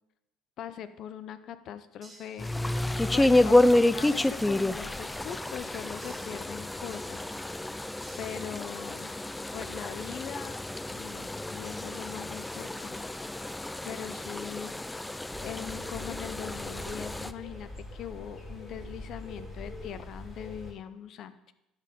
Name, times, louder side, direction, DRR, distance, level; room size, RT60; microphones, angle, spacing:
voice 1, 0.6-2.5 3.1-7.4 8.2-9.1 9.5-10.6 10.9-13.4 13.8-14.9 15.4-21.5, left 9 dB, 60° left, 12 dB, 0.7 m, -41 dB
sound 1, 2.0-3.1 4.0-5.1 6.0-7.1 8.0-9.1, right 2 dB, 25° right, 1.9 m, -56 dB
sound 2, 2.4-17.3, left 1 dB, 10° left, 0.4 m, -29 dB
sound 3, 15.3-20.7, left 1 dB, 35° left, 4.0 m, -43 dB
11.5 x 5.4 x 5.3 m, 0.91 s
hypercardioid pair, 75°, 0 cm